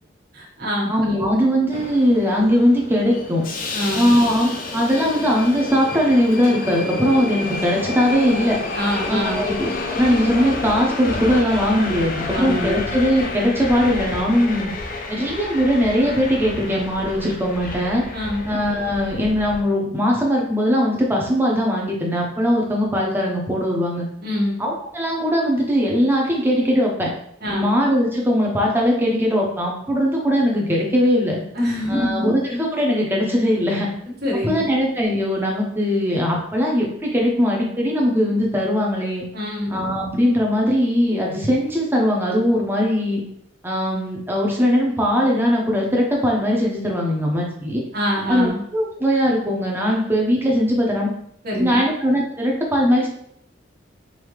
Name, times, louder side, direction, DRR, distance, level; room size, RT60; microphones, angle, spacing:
voice 1, 0.3-1.4 3.7-4.1 8.7-9.5 12.3-12.8 18.1-18.4 24.2-24.6 27.4-27.6 31.5-32.3 34.2-34.8 39.3-39.8 47.9-48.6 51.4-51.8, equal, 55° right, -4 dB, 1.5 m, -25 dB
voice 2, 0.9-3.4 3.9-8.6 9.1-14.7 15.1-18.0 18.5-24.1 24.6-27.1 27.5-31.4 31.9-33.9 34.4-39.2 39.7-43.2 43.6-47.8 48.3-51.1 51.6-53.1, equal, 10° right, -2 dB, 0.9 m, -20 dB
Subway metro underground, 1.7-19.6, left 2 dB, 50° left, 0.6 m, -30 dB
5.4 x 2.8 x 3.2 m, 0.71 s
head